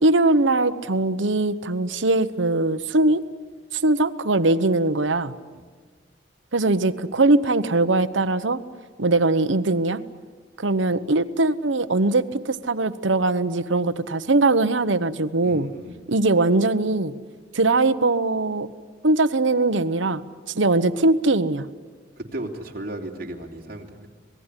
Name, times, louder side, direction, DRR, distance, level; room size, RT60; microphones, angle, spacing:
voice 1, 0.0-3.2 3.7-5.3 6.5-8.6 9.0-10.0 10.6-15.7 16.1-17.1 17.5-18.7 19.0-20.2 20.5-21.6, right 2 dB, 85° right, 12 dB, 1.0 m, -21 dB
voice 2, 15.4-16.1 22.2-24.1, right 1 dB, 50° right, 0 dB, 3.2 m, -35 dB
27.0 x 19.5 x 10.0 m, 1.5 s
head